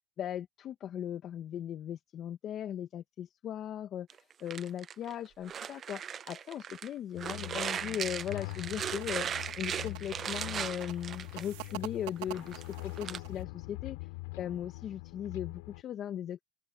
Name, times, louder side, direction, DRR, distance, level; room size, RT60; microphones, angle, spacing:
voice 1, 0.2-14.0 14.4-16.4, left 10 dB, 50° left, 1.8 m, -38 dB
sound 1, 4.1-6.9 7.2-11.7 12.2-13.2, right 8 dB, 40° right, 0.7 m, -38 dB
sound 2, 7.1-15.8, left 26 dB, 85° left, 4.9 m, -43 dB
sound 3, 8.3-13.4, right 27 dB, 80° right, 5.5 m, -46 dB
open air
supercardioid pair, 90°, 0 cm